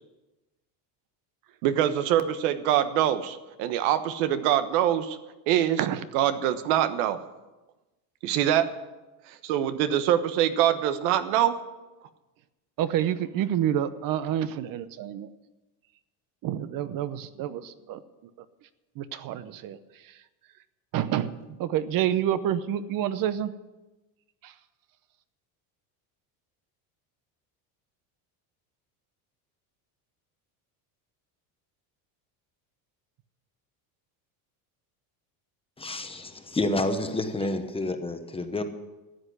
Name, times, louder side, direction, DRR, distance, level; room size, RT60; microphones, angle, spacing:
voice 1, 1.6-5.2 5.5-5.9 6.1-7.2 8.2-8.7 9.4-11.5, right 11 dB, 85° right, 11 dB, 1.2 m, -24 dB
voice 2, 12.8-15.3 16.4-18.0 19.0-19.8 20.9-23.5 24.4-24.5, right 10 dB, 50° right, 14 dB, 0.8 m, -28 dB
voice 3, 35.8-38.6, left 2 dB, 10° left, 7 dB, 1.0 m, -29 dB
13.0 x 7.9 x 8.3 m, 1.1 s
cardioid pair, 135°, 44 cm